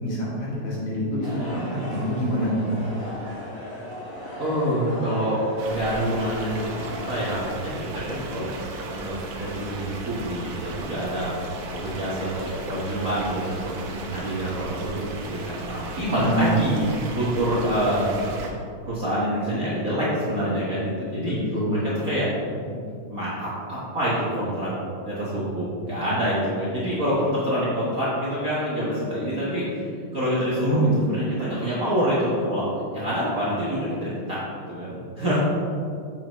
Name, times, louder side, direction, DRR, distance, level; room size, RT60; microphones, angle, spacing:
voice 1, 0.0-2.8 16.2-16.5 21.2-21.9 22.7-22.8 30.6-31.0, equal, 70° left, -7 dB, 3.3 m, -25 dB
sound 1, 1.2-7.4, equal, 35° left, 0.3 m, -37 dB
voice 2, 4.4-5.4 5.7-8.5 8.9-11.3 11.7-13.6 13.9-15.1 15.4-18.2 18.8-21.4 21.8-22.3 23.1-24.7 25.0-35.4, equal, 45° right, -8 dB, 1.2 m, -26 dB
sound 2, 5.6-18.5, right 3 dB, 70° right, 1.5 m, -36 dB
7.5 x 7.2 x 3.1 m, 2.4 s
omnidirectional pair, 3.4 m